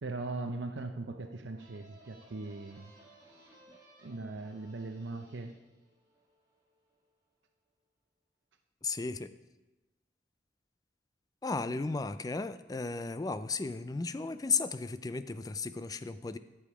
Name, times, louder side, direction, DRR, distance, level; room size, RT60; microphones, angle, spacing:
voice 1, 0.0-2.9 4.0-5.6, right 3 dB, 75° right, 6 dB, 0.6 m, -39 dB
sound 1, 1.6-7.0, right 1 dB, 20° right, 1.9 m, -60 dB
voice 2, 8.8-9.3 11.4-16.4, left 4 dB, 20° left, 12 dB, 0.3 m, -34 dB
11.5 x 7.1 x 4.9 m, 1.1 s
head